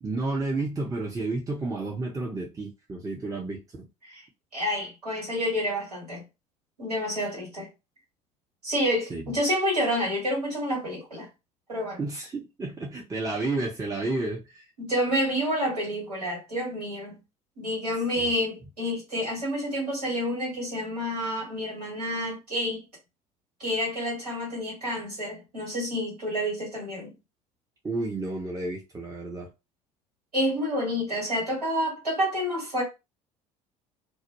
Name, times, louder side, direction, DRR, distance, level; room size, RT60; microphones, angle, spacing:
voice 1, 0.0-3.9 9.1-9.2 12.0-14.7 18.2-18.3 27.8-29.5, right 2 dB, 15° right, 0.6 m, -31 dB
voice 2, 4.5-6.2 6.8-7.7 8.6-11.3 11.7-12.0 14.8-17.2 17.6-22.8 23.6-27.1 30.3-32.8, equal, 80° right, 1.4 m, -29 dB
2.2 x 2.1 x 2.9 m
figure-of-eight pair, 55°, 20 cm